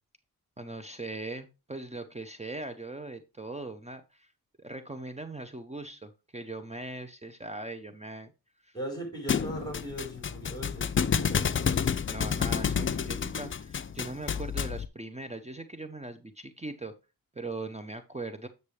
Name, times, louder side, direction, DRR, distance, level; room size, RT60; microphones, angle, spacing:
voice 1, 0.6-4.3 4.6-8.3 8.6-8.8 12.1-16.9 17.4-18.5, right 2 dB, 20° right, 9 dB, 0.7 m, -40 dB
voice 2, 8.7-11.9, right 1 dB, 10° left, 2 dB, 4.2 m, -39 dB
Thump thud, 9.3-14.9, left 7 dB, 35° left, 0.4 m, -29 dB
8.4 x 6.6 x 3.2 m, 0.27 s
wide cardioid pair, 95°, 36 cm